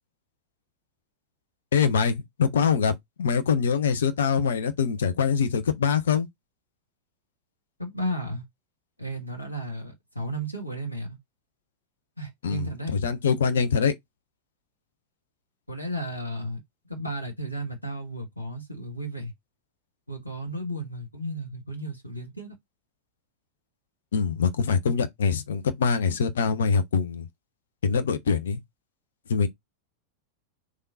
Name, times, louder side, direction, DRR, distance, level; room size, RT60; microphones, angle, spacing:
voice 1, 1.7-2.9 3.2-6.3 12.4-13.9 24.1-27.3 27.8-28.6 29.3-29.5, left 6 dB, 65° left, 0.6 m, -24 dB
voice 2, 7.8-8.4 9.0-11.2 12.2-12.9 15.7-16.6 16.9-19.3 20.1-22.6, right 1 dB, 85° left, 1.1 m, -34 dB
3.6 x 3.2 x 2.7 m
figure-of-eight pair, 90°, 0 cm